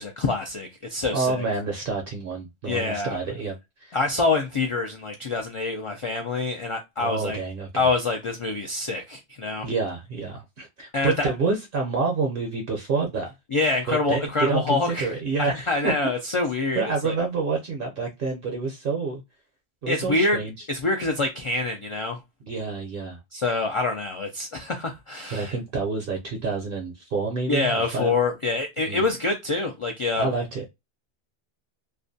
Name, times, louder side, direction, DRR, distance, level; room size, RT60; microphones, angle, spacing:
voice 1, 0.0-1.5 2.7-3.2 3.9-7.4 7.7-9.7 10.9-11.3 13.5-15.1 15.4-17.1 19.9-20.4 20.7-22.2 23.3-25.5 27.5-30.3, left 3 dB, 60° left, 0.3 m, -26 dB
voice 2, 1.1-3.5 3.8-4.0 7.0-7.9 9.6-13.3 13.9-15.9 16.7-19.2 19.8-20.5 22.4-23.2 25.3-28.1 28.9-29.0 30.2-30.6, right 4 dB, 60° right, 0.7 m, -28 dB
2.4 x 2.1 x 2.6 m
omnidirectional pair, 1.1 m